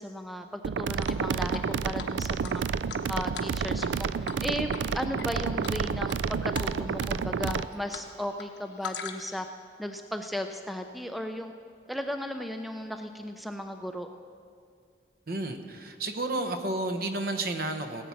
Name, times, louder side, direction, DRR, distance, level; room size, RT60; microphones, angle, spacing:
voice 1, 0.0-2.6 3.1-4.1 4.4-9.5 9.8-11.5 11.9-14.1, equal, ahead, 6 dB, 0.4 m, -35 dB
sound 1, 0.6-7.7, right 6 dB, 85° right, 0.4 m, -30 dB
Drip, 1.0-1.7 2.0-2.1 2.4-4.0 4.2-4.4 4.7-5.3 5.6-6.2 6.5-6.7 7.0-8.1 8.3-9.4, left 7 dB, 90° left, 1.0 m, -40 dB
voice 2, 15.3-18.1, right 2 dB, 55° right, 7 dB, 1.0 m, -31 dB
18.0 x 8.4 x 5.8 m, 2.3 s
head